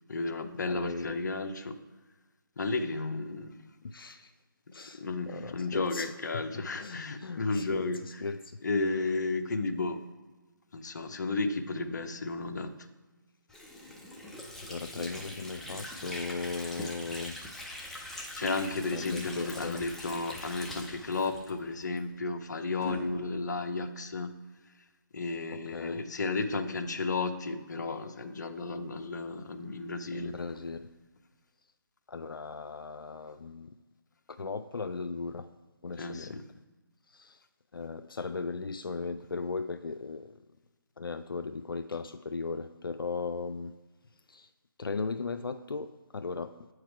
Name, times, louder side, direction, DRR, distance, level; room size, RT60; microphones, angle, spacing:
voice 1, 0.1-1.8 2.6-3.5 4.9-8.2 8.6-10.0 10.7-12.7 18.1-24.3 25.1-30.3 36.0-36.4, left 3 dB, 55° left, 8 dB, 0.7 m, -33 dB
voice 2, 0.7-1.2 3.8-4.3 4.7-6.4 6.7-8.6 14.6-17.4 18.9-19.8 25.5-26.0 30.1-30.9 32.1-33.7 34.3-35.5 35.8-36.4 37.1-37.4 37.7-40.4 41.0-43.7 44.3-44.5 44.8-46.5, left 4 dB, 90° left, 9 dB, 0.4 m, -37 dB
Water / Sink (filling or washing), 13.5-22.1, left 1 dB, ahead, 0.4 m, -43 dB
sound 1, 17.3-19.7 21.3-24.5 26.3-27.4 29.4-31.2 32.4-32.7, equal, 35° left, 1.4 m, -49 dB
8.0 x 4.8 x 4.6 m, 1.2 s
figure-of-eight pair, 155°, 11 cm